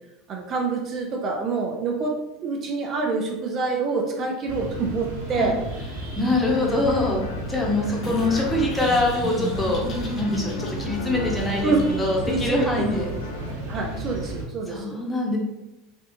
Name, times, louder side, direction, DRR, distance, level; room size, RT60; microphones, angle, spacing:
voice 1, 0.3-2.1 2.4-5.6 11.6-11.8 12.3-12.7 13.0-13.1 13.7-15.0, right 4 dB, 40° right, 1 dB, 0.5 m, -26 dB
sound 1, 4.5-14.4, right 1 dB, 90° right, 0.9 m, -33 dB
voice 2, 6.1-9.9 10.1-13.1 14.7-15.4, left 2 dB, 10° left, -1 dB, 0.9 m, -24 dB
sound 2, 6.4-13.5, left 4 dB, 70° left, 0.4 m, -36 dB
sound 3, 8.0-13.0, left 2 dB, 40° left, 0.8 m, -35 dB
3.5 x 2.4 x 2.6 m, 0.97 s
hypercardioid pair, 75°, 0 cm